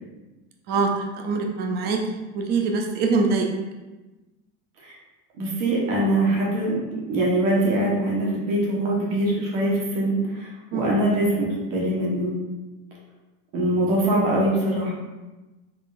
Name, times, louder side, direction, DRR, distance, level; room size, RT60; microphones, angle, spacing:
voice 1, 1.2-2.0 2.3-3.5 10.7-10.9, right 4 dB, 30° right, 2 dB, 0.4 m, -23 dB
voice 2, 5.4-6.8 7.1-12.3 13.5-14.9, right 1 dB, 60° right, -4 dB, 1.1 m, -23 dB
3.7 x 3.4 x 2.4 m, 1.1 s
supercardioid pair, 155°, 34 cm